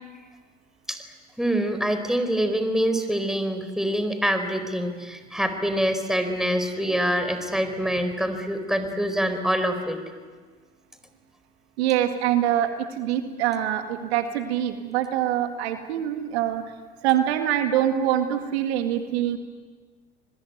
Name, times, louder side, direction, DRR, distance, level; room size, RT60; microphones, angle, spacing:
voice 1, 1.4-10.0, equal, ahead, 8 dB, 4.5 m, -25 dB
voice 2, 11.8-16.6 17.0-19.4, right 11 dB, 75° right, 6 dB, 2.1 m, -24 dB
27.5 x 21.5 x 9.3 m, 1.5 s
hypercardioid pair, 70°, 32 cm